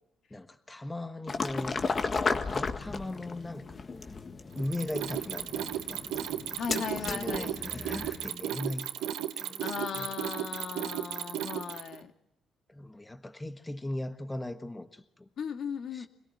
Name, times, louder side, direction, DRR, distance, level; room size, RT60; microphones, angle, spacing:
voice 1, 0.3-1.8 2.4-4.2 4.5-6.0 7.0-9.1 9.4-10.1 12.7-15.3 15.9-16.1, left 1 dB, 15° left, 1.4 m, -38 dB
sound 1, 1.3-8.3, left 4 dB, 35° left, 1.7 m, -35 dB
Mechanisms, 4.6-12.0, right 11 dB, 90° right, 1.3 m, -35 dB
voice 2, 6.6-7.5 9.6-12.1 15.4-16.1, left 7 dB, 65° left, 1.8 m, -37 dB
25.0 x 18.0 x 9.3 m
cardioid pair, 90°, 0 cm